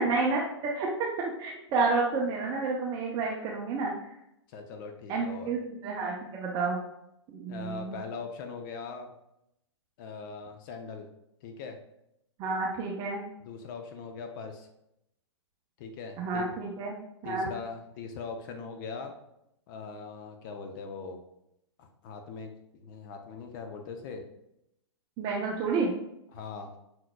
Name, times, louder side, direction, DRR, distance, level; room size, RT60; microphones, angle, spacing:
voice 1, 0.0-3.9 5.1-6.8 7.3-8.0 12.4-13.2 16.2-17.0 17.2-17.5 25.2-25.9, right 3 dB, 30° right, -3 dB, 0.7 m, -30 dB
voice 2, 4.5-5.5 7.5-9.1 10.0-11.1 11.4-11.8 13.5-14.7 15.8-16.5 17.2-19.1 19.7-21.2 21.8-24.3 26.3-26.7, left 4 dB, 45° left, 5 dB, 0.6 m, -41 dB
5.9 x 3.8 x 2.2 m, 0.82 s
hypercardioid pair, 120°, 15 cm